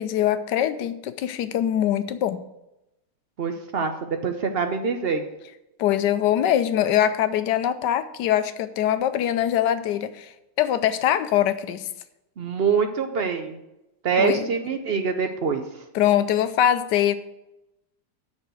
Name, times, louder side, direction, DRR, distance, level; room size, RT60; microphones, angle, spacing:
voice 1, 0.0-2.4 5.8-10.3 10.6-11.9 14.2-14.5 15.9-17.2, left 11 dB, 75° left, 12 dB, 1.2 m, -23 dB
voice 2, 3.4-3.9 4.2-5.2 12.4-13.6 14.0-15.6, right 5 dB, 65° right, 6 dB, 0.5 m, -24 dB
6.9 x 6.0 x 7.5 m, 0.90 s
omnidirectional pair, 1.9 m